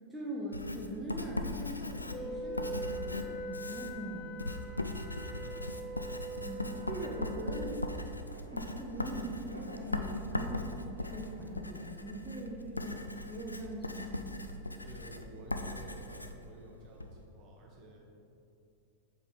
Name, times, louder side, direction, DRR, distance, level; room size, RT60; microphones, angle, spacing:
voice 1, 0.1-4.3 6.4-7.8 8.5-14.5, right 1 dB, 5° right, -5 dB, 0.8 m, -42 dB
Writing, 0.5-17.2, left 2 dB, 85° left, 0.3 m, -39 dB
Wind instrument woodwind instrument, 2.1-7.6, right 2 dB, 45° left, 1.0 m, -42 dB
sound 1, 4.7-11.5, right 1 dB, 85° right, 0.6 m, -54 dB
voice 2, 5.2-5.8 14.8-18.0, right 1 dB, 35° right, -2 dB, 1.2 m, -52 dB
7.1 x 3.7 x 4.2 m, 2.6 s
figure-of-eight pair, 90°, 0 cm